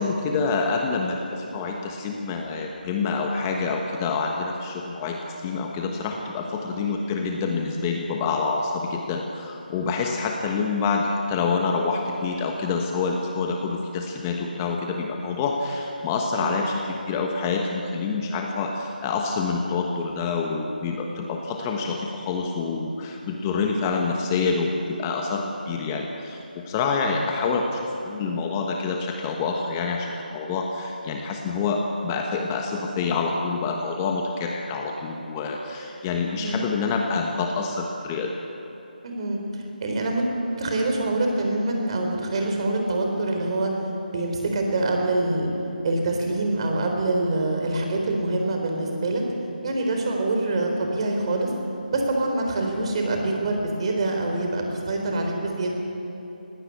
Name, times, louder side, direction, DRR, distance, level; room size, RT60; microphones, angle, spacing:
voice 1, 0.0-38.3, left 4 dB, 20° left, 2 dB, 1.3 m, -27 dB
voice 2, 39.0-39.4 39.8-40.3 40.6-43.7 44.1-45.5 45.8-49.2 49.6-51.5 51.9-55.7, right 2 dB, 35° right, 2 dB, 4.0 m, -25 dB
20.0 x 17.0 x 8.6 m, 2.9 s
figure-of-eight pair, 160°, 5 cm